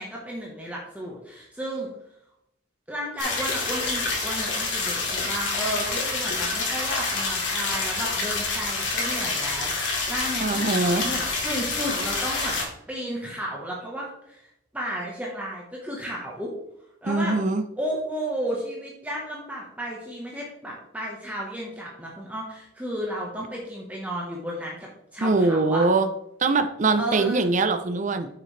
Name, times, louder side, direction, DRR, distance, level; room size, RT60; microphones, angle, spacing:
voice 1, 0.0-1.9 2.9-10.7 11.0-16.5 17.0-17.4 17.8-25.8 27.0-27.5, equal, 10° right, -3 dB, 1.2 m, -33 dB
sound 1, 3.2-12.6, left 3 dB, 80° left, 2.3 m, -27 dB
voice 2, 10.4-11.1 17.0-17.6 25.2-26.1 26.4-28.3, right 3 dB, 40° right, 8 dB, 0.6 m, -22 dB
8.4 x 6.5 x 3.3 m, 0.77 s
head